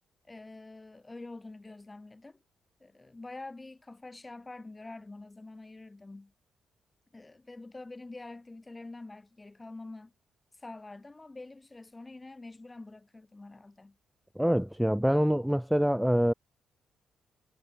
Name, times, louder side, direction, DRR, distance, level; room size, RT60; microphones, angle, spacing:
voice 1, 0.3-2.4 2.8-6.3 7.1-10.1 10.6-14.0, left 2 dB, 25° left, 2.0 m, -46 dB
voice 2, 14.4-16.3, equal, 5° right, 0.5 m, -25 dB
hypercardioid pair, 45°, 0 cm